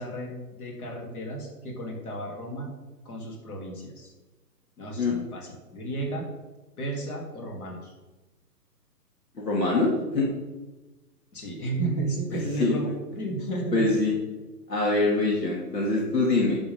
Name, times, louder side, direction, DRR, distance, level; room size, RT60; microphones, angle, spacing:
voice 1, 0.0-2.7 3.0-4.1 4.8-6.3 6.8-7.9 11.3-14.1, right 2 dB, 60° left, 0 dB, 3.5 m, -33 dB
voice 2, 9.4-10.3 12.3-12.8 13.7-14.1 14.7-16.5, left 2 dB, 80° left, -3 dB, 2.7 m, -24 dB
12.0 x 7.3 x 3.8 m, 1.1 s
hypercardioid pair, 140°, 49 cm